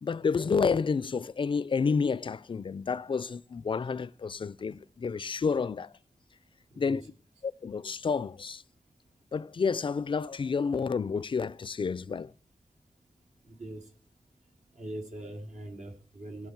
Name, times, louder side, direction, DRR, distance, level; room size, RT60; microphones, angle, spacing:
voice 1, 0.0-5.9 6.8-7.0 7.4-8.6 9.3-12.3, left 5 dB, 40° left, 0.4 m, -30 dB
voice 2, 13.4-13.9 14.7-16.5, right 1 dB, 70° right, 2.4 m, -41 dB
17.0 x 6.0 x 4.5 m
wide cardioid pair, 75°, 12 cm